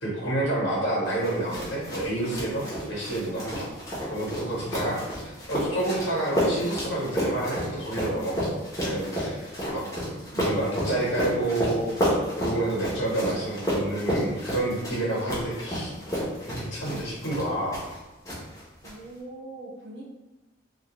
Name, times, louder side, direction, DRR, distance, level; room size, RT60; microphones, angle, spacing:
voice 1, 0.0-3.7 4.1-5.0 5.5-8.5 8.8-9.8 10.3-12.0 12.4-17.8, right 1 dB, 70° left, -5 dB, 0.9 m, -29 dB
sound 1, 1.2-18.0 18.2-18.9, equal, 15° left, 0.7 m, -31 dB
voice 2, 9.6-10.1 18.8-20.0, right 1 dB, 60° right, -6 dB, 0.9 m, -45 dB
2.3 x 2.3 x 2.9 m, 1.1 s
head